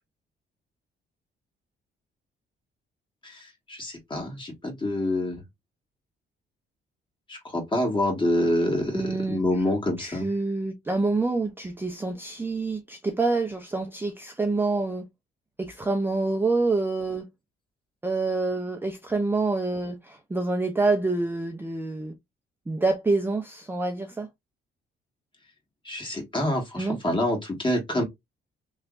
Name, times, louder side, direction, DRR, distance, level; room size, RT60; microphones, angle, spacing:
voice 1, 3.2-5.4 7.3-10.3 25.8-28.0, left 1 dB, 25° left, 1.8 m, -27 dB
voice 2, 8.9-9.4 10.0-15.1 15.6-17.3 18.0-22.1 22.7-24.3 26.8-27.0, right 3 dB, 10° right, 0.5 m, -27 dB
3.2 x 3.1 x 2.4 m
cardioid pair, 90°, 20 cm